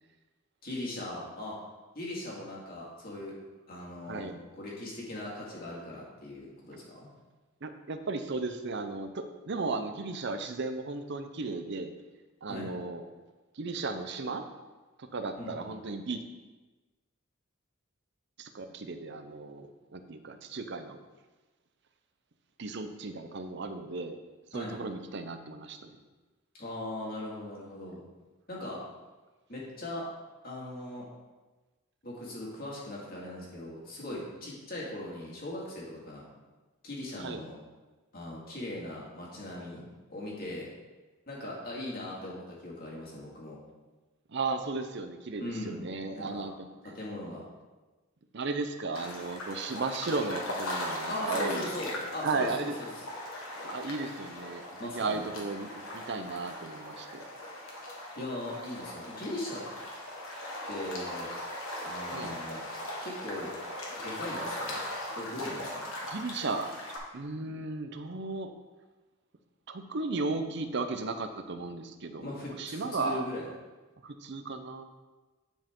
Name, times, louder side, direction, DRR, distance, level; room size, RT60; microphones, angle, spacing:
voice 1, 0.6-1.6 2.0-3.4 3.7-7.1 12.5-12.7 15.4-15.7 24.5-24.8 26.5-28.0 28.5-28.8 29.5-30.1 30.4-31.1 32.0-36.3 36.8-37.6 38.1-39.8 40.1-40.7 41.3-43.6 45.4-45.8 46.2-46.5 46.9-47.4 51.1-52.9 54.8-55.2 58.1-59.6 60.7-61.3 61.8-62.6 63.0-63.5 64.0-64.8 65.1-65.9 72.2-73.4, left 1 dB, 45° left, -4 dB, 2.1 m, -39 dB
voice 2, 7.6-11.9 12.4-13.0 13.5-14.5 15.0-16.2 18.4-21.0 22.6-24.2 24.5-26.0 37.2-37.4 44.3-46.7 48.3-51.8 52.2-52.7 53.6-57.2 62.1-62.4 66.0-66.7 67.1-68.5 69.7-73.3 74.0-74.9, right 3 dB, 55° right, 8 dB, 0.6 m, -35 dB
sound 1, 48.9-67.0, left 1 dB, 75° left, 1.5 m, -39 dB
10.0 x 4.9 x 3.7 m, 1.2 s
head